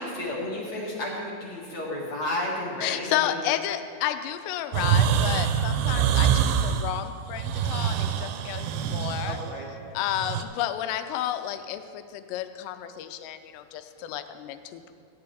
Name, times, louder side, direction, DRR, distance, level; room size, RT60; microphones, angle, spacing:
voice 1, 0.0-3.4 9.2-9.7, left 1 dB, 55° left, -4 dB, 1.6 m, -32 dB
voice 2, 2.8-9.4 9.9-14.9, left 11 dB, 85° left, 9 dB, 2.8 m, -31 dB
sound 1, 4.7-10.4, right 8 dB, 85° right, 2.6 m, -25 dB
16.5 x 10.5 x 3.4 m, 2.3 s
omnidirectional pair, 4.9 m